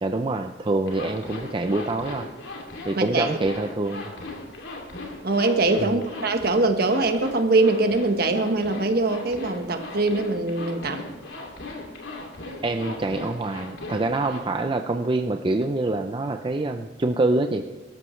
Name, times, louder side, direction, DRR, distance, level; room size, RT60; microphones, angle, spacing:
voice 1, 0.0-2.3 2.8-4.1 5.8-6.0 12.6-17.6, right 2 dB, 25° right, 6 dB, 0.5 m, -25 dB
Zipper (clothing), 0.9-14.4, left 2 dB, 80° left, 2.7 m, -38 dB
voice 2, 2.9-3.3 5.2-11.0, right 2 dB, 55° right, 6 dB, 1.3 m, -22 dB
22.5 x 13.0 x 3.2 m, 1.2 s
head